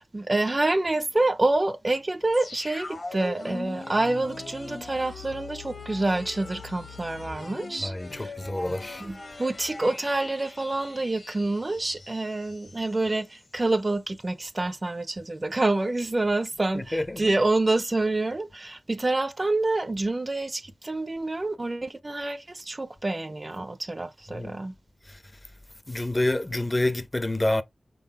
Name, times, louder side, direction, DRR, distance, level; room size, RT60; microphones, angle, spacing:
voice 1, 0.0-8.3 9.0-24.7, right 2 dB, 35° right, 0.5 m, -27 dB
sound 1, 2.3-13.1 13.5-13.6, left 3 dB, 55° left, 1.1 m, -41 dB
voice 2, 7.8-9.0 16.7-17.3 24.3-24.5 25.1-25.2 25.9-27.6, left 1 dB, 25° left, 0.5 m, -28 dB
3.8 x 3.8 x 2.8 m
cardioid pair, 55°, 0 cm